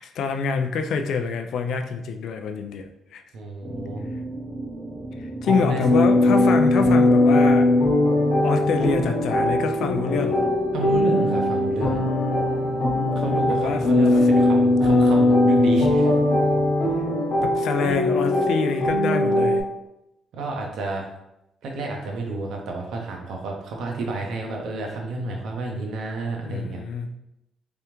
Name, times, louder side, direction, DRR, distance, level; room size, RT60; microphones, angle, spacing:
voice 1, 0.0-3.2 5.2-7.8 8.4-10.5 13.5-14.3 17.4-19.6 26.4-27.1, left 5 dB, 65° left, 7 dB, 0.3 m, -26 dB
voice 2, 3.3-4.0 5.4-5.8 10.7-12.0 13.1-16.1 20.3-21.0 21.6-26.8, right 2 dB, 70° right, 1 dB, 0.7 m, -30 dB
sound 1, 3.6-16.7, right 2 dB, 15° right, 0.4 m, -35 dB
sound 2, 5.5-19.6, left 2 dB, 45° left, 0.9 m, -20 dB
3.4 x 3.3 x 3.0 m, 0.86 s
cardioid pair, 170°, 0 cm